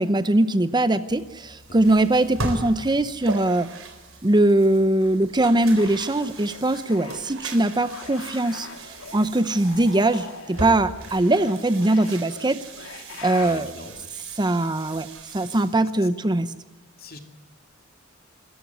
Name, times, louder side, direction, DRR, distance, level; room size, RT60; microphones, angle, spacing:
voice 1, 0.0-3.7 4.2-12.6 13.2-13.7 14.4-15.1 15.3-16.5, right 1 dB, 20° right, 12 dB, 0.7 m, -21 dB
sound 1, 1.1-15.8, right 2 dB, 70° right, 4.0 m, -38 dB
sound 2, 5.5-7.4 7.7-13.6, left 4 dB, 70° left, 2.7 m, -42 dB
voice 2, 13.4-14.1 15.8-15.9 17.0-17.2, left 2 dB, 45° left, 5 dB, 2.7 m, -41 dB
26.0 x 14.5 x 9.4 m, 1.1 s
head